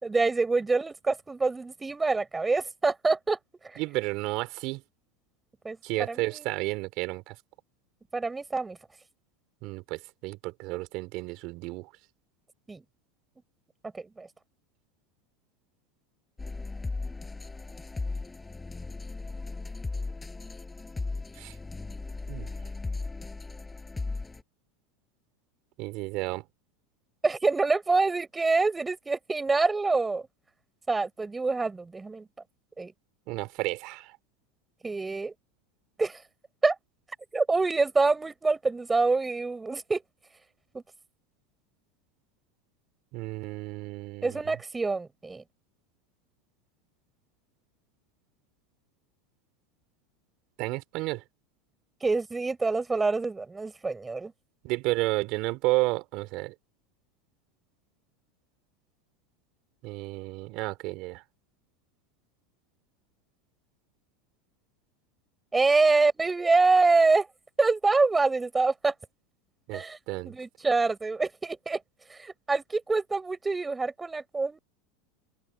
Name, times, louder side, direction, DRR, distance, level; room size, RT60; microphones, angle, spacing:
voice 1, 0.0-3.4 3.6-3.8 5.6-6.5 8.1-8.8 12.7-12.8 13.9-14.3 27.2-30.3 30.9-32.3 32.8-32.9 34.8-35.3 36.0-36.2 36.6-36.8 37.3-40.0 40.7-40.8 44.2-45.4 52.0-54.3 65.5-67.3 67.6-68.9 69.7-70.0 70.3-71.8 72.1-74.6, right 3 dB, 15° right, 7.1 m, -26 dB
voice 2, 3.8-4.8 5.8-7.4 9.6-11.9 21.3-21.6 22.3-22.5 25.8-26.5 33.3-34.2 43.1-44.6 50.6-51.2 54.6-56.5 59.8-61.2 69.7-70.3, right 22 dB, 55° right, 3.7 m, -32 dB
sound 1, 16.4-24.4, left 3 dB, 10° left, 6.5 m, -36 dB
supercardioid pair, 115°, 0 cm